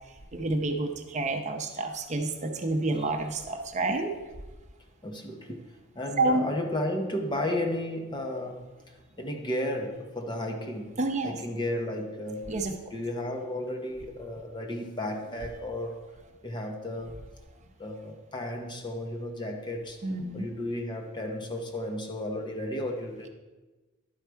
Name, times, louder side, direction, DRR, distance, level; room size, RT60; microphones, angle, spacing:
voice 1, 0.3-4.1 6.2-6.4 11.0-11.4 12.5-12.7 20.0-20.5, right 2 dB, 35° right, 0.7 m, -29 dB
voice 2, 2.1-2.7 5.0-5.6 5.9-12.5 12.9-16.0 16.4-17.2 17.8-20.0 20.3-23.3, left 1 dB, 20° left, 0.8 m, -34 dB
11.5 x 4.8 x 4.6 m
head